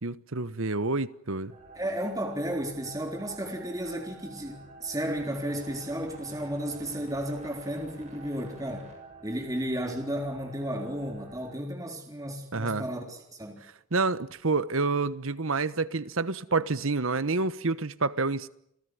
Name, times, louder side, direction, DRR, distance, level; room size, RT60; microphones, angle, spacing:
voice 1, 0.0-1.5 12.5-12.9 13.9-18.5, right 3 dB, 70° right, 1.2 m, -28 dB
sound 1, 1.5-11.5, right 2 dB, 30° right, 7.2 m, -49 dB
voice 2, 1.8-8.9 9.2-13.6, right 1 dB, 15° right, 3.8 m, -33 dB
29.0 x 18.0 x 9.5 m
head